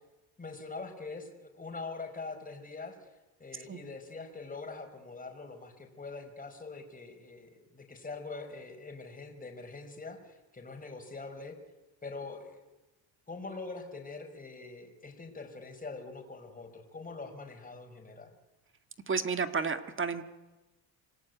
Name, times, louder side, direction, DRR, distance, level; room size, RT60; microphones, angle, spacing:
voice 1, 0.4-2.9 3.4-11.6 12.0-12.6 13.3-18.3, left 3 dB, 20° left, 4 dB, 5.1 m, -43 dB
voice 2, 3.5-3.9 19.1-20.2, right 5 dB, 30° right, 9 dB, 1.9 m, -32 dB
26.5 x 19.5 x 9.4 m, 1.1 s
cardioid pair, 105°, 43 cm